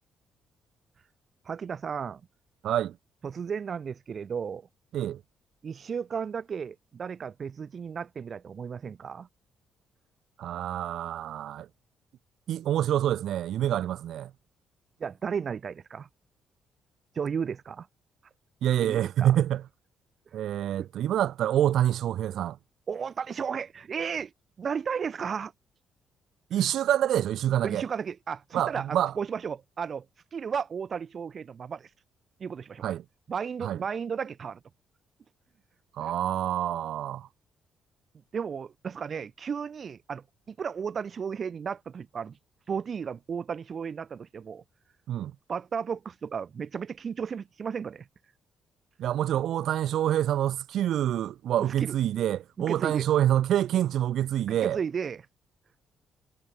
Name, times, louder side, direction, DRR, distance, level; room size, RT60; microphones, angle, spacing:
voice 1, 1.5-2.2 3.2-4.7 5.6-9.3 15.0-16.1 17.1-17.9 18.8-19.4 22.9-24.3 24.6-25.5 27.6-30.1 30.3-31.9 32.4-32.8 33.3-34.6 38.3-42.4 42.7-44.6 45.5-48.0 51.6-52.0 52.6-53.1 54.5-55.2, right 6 dB, 45° right, 0.9 m, -34 dB
voice 2, 2.6-2.9 4.9-5.2 10.4-11.7 12.5-14.3 18.6-19.6 20.3-22.6 26.5-27.8 28.5-29.1 32.8-33.0 33.6-33.8 36.0-37.3 45.1-45.3 49.0-54.8, right 11 dB, 75° right, 0.8 m, -26 dB
cardioid pair, 90°, 0 cm